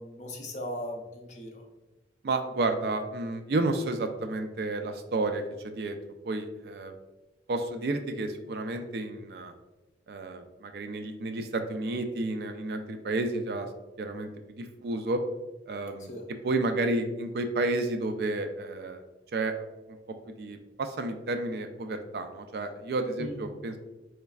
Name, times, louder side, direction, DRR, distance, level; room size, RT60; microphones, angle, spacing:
voice 1, 0.0-1.6 16.1-16.3 23.2-23.4, left 1 dB, 40° left, 1 dB, 0.6 m, -38 dB
voice 2, 2.2-6.0 6.2-6.9 7.5-9.5 10.1-13.7 14.0-15.2 15.7-16.1 16.4-19.0 19.3-19.5 20.4-23.8, right 2 dB, 60° right, 6 dB, 0.3 m, -31 dB
4.0 x 3.2 x 2.3 m, 1.1 s
head